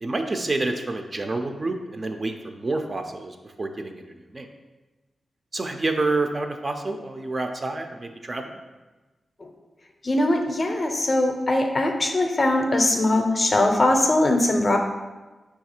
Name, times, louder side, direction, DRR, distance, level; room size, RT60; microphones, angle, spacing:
voice 1, 0.0-4.5 5.5-8.6, right 2 dB, 35° right, 5 dB, 0.3 m, -28 dB
voice 2, 10.0-14.8, left 1 dB, 35° left, 4 dB, 0.5 m, -21 dB
4.8 x 2.4 x 4.3 m, 1.2 s
wide cardioid pair, 105°, 0 cm